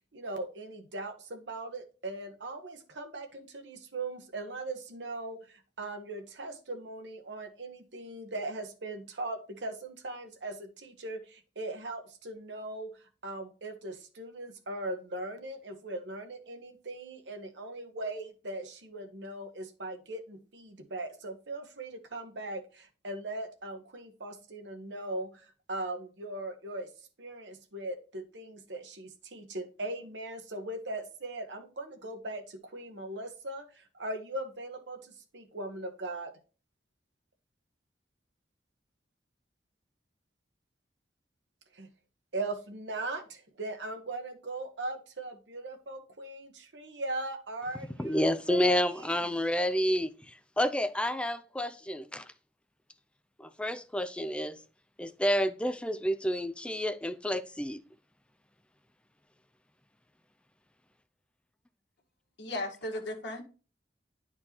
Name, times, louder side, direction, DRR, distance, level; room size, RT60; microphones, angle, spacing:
voice 1, 0.1-12.9 13.2-26.9 27.2-36.3 41.7-41.9 42.3-48.8, right 2 dB, 85° right, 1.1 m, -39 dB
voice 2, 48.0-52.3 53.4-54.6 55.0-57.8, equal, 5° left, 0.4 m, -29 dB
voice 3, 62.4-63.4, left 1 dB, 80° left, 1.4 m, -36 dB
9.9 x 4.4 x 2.9 m
head